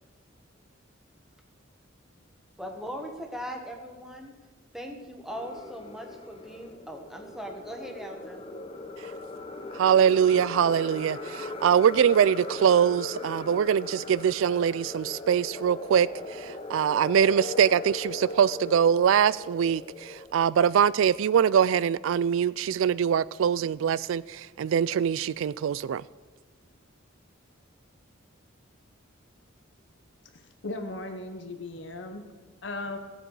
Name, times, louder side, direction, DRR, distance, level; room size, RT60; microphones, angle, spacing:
voice 1, 2.6-4.3 4.7-8.5, equal, ahead, 1.3 m, -39 dB
sound 1, 5.3-20.5, left 2 dB, 25° left, 0.8 m, -39 dB
voice 2, 9.8-26.0, right 8 dB, 70° right, 0.3 m, -23 dB
voice 3, 30.3-32.2 32.6-33.0, left 2 dB, 55° left, 0.9 m, -37 dB
17.0 x 7.8 x 4.7 m
head